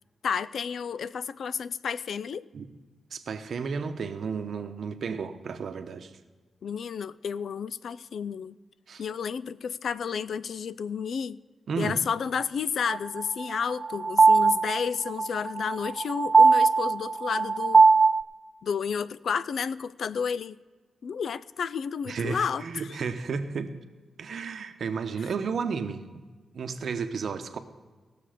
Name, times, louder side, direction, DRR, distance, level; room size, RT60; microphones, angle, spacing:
voice 1, 0.2-2.4 6.6-8.6 9.0-11.4 11.8-17.9 18.6-20.6 21.0-22.9, left 6 dB, 70° left, 16 dB, 0.3 m, -31 dB
voice 2, 3.1-6.1 8.9-9.0 11.7-12.0 22.1-23.7 24.2-26.0 26.5-27.6, right 5 dB, 65° right, 8 dB, 0.9 m, -32 dB
sound 1, 12.9-18.2, right 4 dB, 45° right, 0.3 m, -20 dB
18.0 x 6.7 x 5.0 m, 1.4 s
cardioid pair, 100°, 0 cm